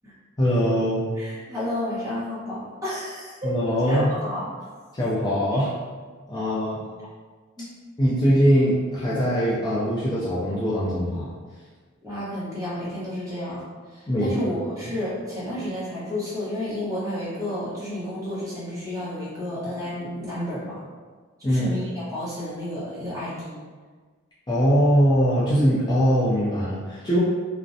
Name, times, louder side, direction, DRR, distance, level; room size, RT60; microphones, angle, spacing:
voice 1, 0.4-1.0 3.4-4.1 4.9-5.7 6.3-6.8 8.0-11.3 14.1-14.3 21.4-21.8 24.5-27.2, equal, 20° left, -9 dB, 0.4 m, -21 dB
voice 2, 1.2-3.5 3.9-4.5 7.6-7.7 12.0-13.6 13.9-20.8 21.4-23.6, left 1 dB, 15° right, -10 dB, 0.9 m, -31 dB
2.4 x 2.1 x 2.6 m, 1.5 s
head